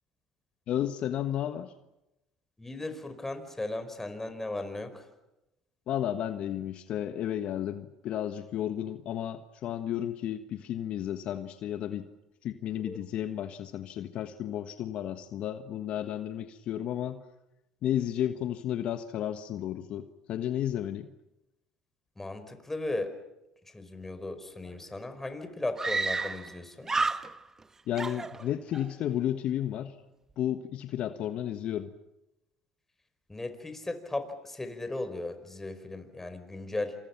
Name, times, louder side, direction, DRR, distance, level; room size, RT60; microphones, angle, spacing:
voice 1, 0.7-1.7 5.9-12.1 12.4-17.2 17.8-21.1 27.9-30.0 30.4-31.9, left 11 dB, 60° left, 9 dB, 1.4 m, -33 dB
voice 2, 2.6-5.1 12.9-13.0 22.2-23.2 23.7-26.9 33.3-37.0, left 2 dB, 15° left, 9 dB, 5.0 m, -36 dB
Screaming, 24.7-24.8 25.0-25.1 25.8-26.6 26.8-27.6 28.0-28.9, right 3 dB, 20° right, 1.3 m, -31 dB
28.5 x 27.0 x 6.0 m, 0.93 s
hypercardioid pair, 75°, 2 cm